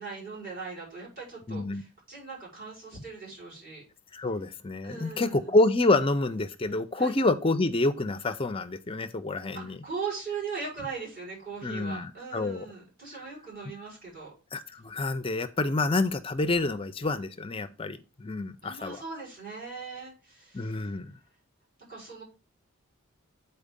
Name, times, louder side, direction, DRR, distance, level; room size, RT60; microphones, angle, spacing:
voice 1, 0.0-3.8 4.8-5.5 7.0-7.2 9.5-14.3 18.6-20.9 21.9-22.2, right 5 dB, 40° right, 5.0 m, -39 dB
voice 2, 1.5-1.8 4.1-9.8 11.6-12.7 14.5-19.0 20.5-21.1, left 2 dB, 25° left, 0.4 m, -28 dB
8.5 x 4.4 x 5.2 m
head